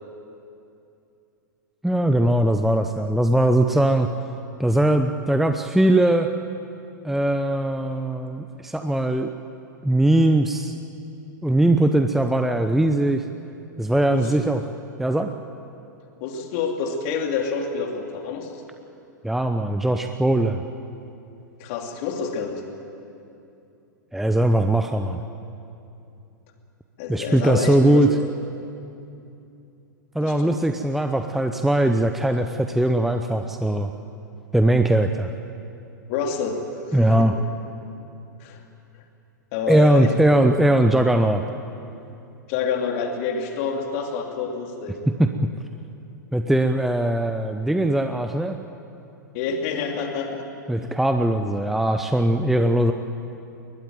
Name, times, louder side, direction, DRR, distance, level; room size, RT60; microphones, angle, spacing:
voice 1, 1.8-4.1 4.6-6.3 7.0-9.3 9.8-10.7 11.4-13.2 13.8-14.6 15.0-15.3 19.2-20.6 24.1-25.2 27.1-28.1 30.1-33.9 34.5-35.3 36.9-37.3 39.7-41.4 45.2-45.5 46.3-48.6 50.7-52.9, right 1 dB, ahead, 7 dB, 0.7 m, -20 dB
voice 2, 16.2-18.6 21.6-22.6 27.0-28.2 30.2-30.6 36.1-36.6 36.9-37.3 38.4-38.6 39.5-40.5 42.5-45.0 49.3-50.4, left 5 dB, 45° left, 3 dB, 2.9 m, -28 dB
22.0 x 18.5 x 9.3 m, 2.7 s
figure-of-eight pair, 100°, 10 cm